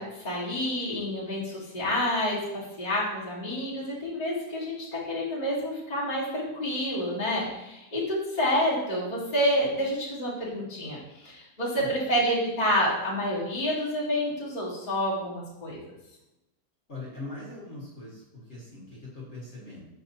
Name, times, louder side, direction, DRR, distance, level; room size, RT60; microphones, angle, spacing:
voice 1, 0.0-15.8, equal, 25° left, -7 dB, 1.7 m, -28 dB
voice 2, 16.9-19.8, left 2 dB, 40° left, -7 dB, 1.8 m, -41 dB
6.6 x 5.2 x 2.8 m, 0.93 s
omnidirectional pair, 1.8 m